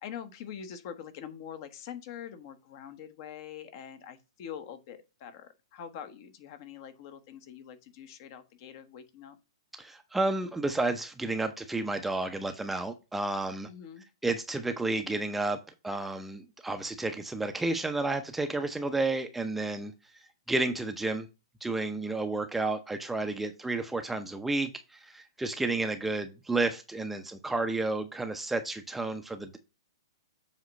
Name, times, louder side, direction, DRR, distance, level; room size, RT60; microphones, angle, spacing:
voice 1, 0.0-9.4 13.7-14.1, left 8 dB, 45° left, 1.0 m, -44 dB
voice 2, 9.8-13.7 14.2-15.6 15.8-19.9 20.5-21.3 21.6-29.6, right 2 dB, 5° right, 0.6 m, -31 dB
7.3 x 2.9 x 5.2 m
figure-of-eight pair, 115°, 3 cm